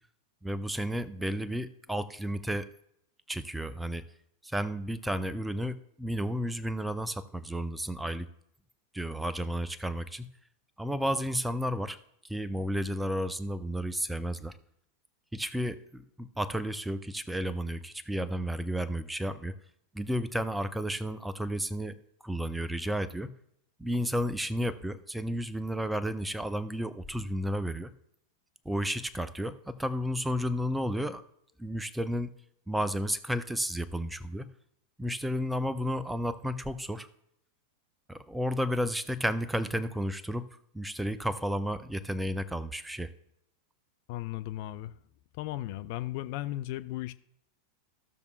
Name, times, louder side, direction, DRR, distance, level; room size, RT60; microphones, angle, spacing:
voice 1, 0.4-2.7 3.3-4.0 4.4-8.3 8.9-10.3 10.8-12.0 12.2-14.6 15.3-19.5 19.9-22.0 22.2-23.3 23.8-27.9 28.6-31.2 31.6-32.3 32.7-34.5 35.0-37.1 38.1-40.5 40.7-43.1, equal, 5° right, 0.5 m, -32 dB
voice 2, 44.1-44.9 45.4-47.1, left 15 dB, 45° left, 0.3 m, -36 dB
15.0 x 6.7 x 2.3 m
figure-of-eight pair, 90°, 0 cm